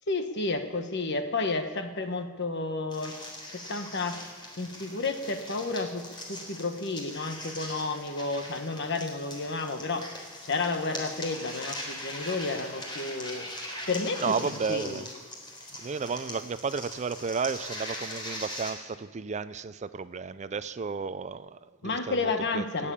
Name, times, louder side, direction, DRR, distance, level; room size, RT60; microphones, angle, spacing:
voice 1, 0.1-3.2 3.5-4.2 4.6-10.1 10.4-13.5 13.9-15.0 21.8-22.9, left 3 dB, 60° left, 7 dB, 1.4 m, -31 dB
sound 1, 2.9-18.7, left 1 dB, 25° left, 3.7 m, -41 dB
voice 2, 14.2-15.1 15.8-22.9, right 5 dB, 35° right, 14 dB, 0.4 m, -33 dB
19.5 x 8.5 x 8.5 m, 1.5 s
head